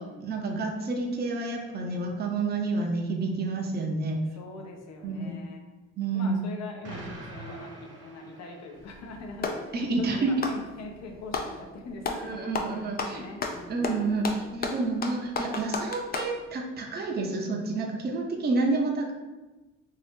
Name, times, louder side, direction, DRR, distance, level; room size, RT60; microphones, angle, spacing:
voice 1, 0.0-4.2 5.0-5.4 6.0-6.4 9.7-10.5 12.1-13.2 13.7-19.1, right 3 dB, 35° right, 1 dB, 0.6 m, -29 dB
voice 2, 4.3-5.6 6.1-14.4, left 2 dB, 60° left, 1 dB, 0.7 m, -43 dB
Explosion, 6.8-9.0, right 1 dB, 55° right, 0.9 m, -43 dB
Clapping, 8.8-9.7 10.3-11.6 12.0-12.3 12.5-16.4, left 4 dB, 30° left, 0.4 m, -32 dB
3.0 x 2.7 x 3.4 m, 1.1 s
cardioid pair, 90°, 30 cm